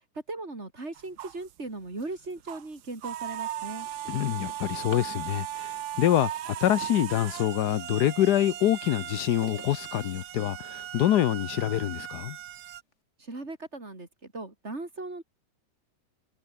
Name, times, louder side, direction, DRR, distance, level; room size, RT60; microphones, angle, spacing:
voice 1, 0.3-3.9 13.2-15.2, right 2 dB, 40° right, 4.4 m, -38 dB
sound 1, 1.0-1.5 2.0-2.1 2.5-12.8, right 12 dB, 75° right, 1.4 m, -37 dB
Drawer open or close, 2.6-2.8 3.2-5.2 6.3-7.9 8.4-10.9 11.5-11.6 12.1-12.2 12.6-12.9, left 4 dB, 45° left, 2.9 m, -49 dB
voice 2, 4.1-12.4, left 12 dB, 80° left, 1.4 m, -26 dB
omnidirectional pair, 1.7 m